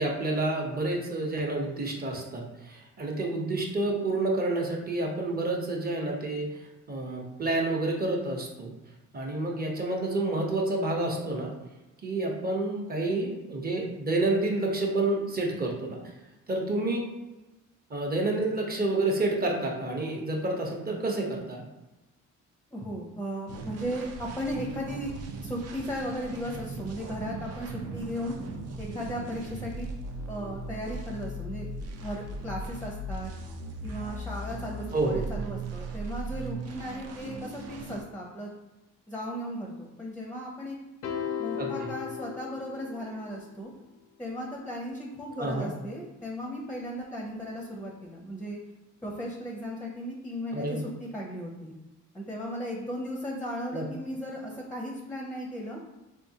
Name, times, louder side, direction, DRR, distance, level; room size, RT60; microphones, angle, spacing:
voice 1, 0.0-6.4 6.9-8.7 9.1-11.5 12.0-16.0 16.5-17.1 17.9-21.6 34.9-35.2 41.6-41.9 45.4-45.7 50.5-50.8 53.7-53.8, right 2 dB, 30° right, 0 dB, 0.8 m, -29 dB
voice 2, 22.7-25.1 25.4-28.3 28.8-29.9 30.3-31.7 32.0-33.3 33.8-38.5 39.1-40.8 41.4-43.7 44.2-48.6 49.0-51.7 52.1-55.8, equal, 5° left, -1 dB, 0.6 m, -36 dB
sound 1, 23.5-38.0, right 2 dB, 55° right, 0.5 m, -38 dB
sound 2, 41.0-43.4, left 8 dB, 85° left, 0.6 m, -36 dB
3.6 x 2.8 x 2.8 m, 1.0 s
cardioid pair, 90°, 30 cm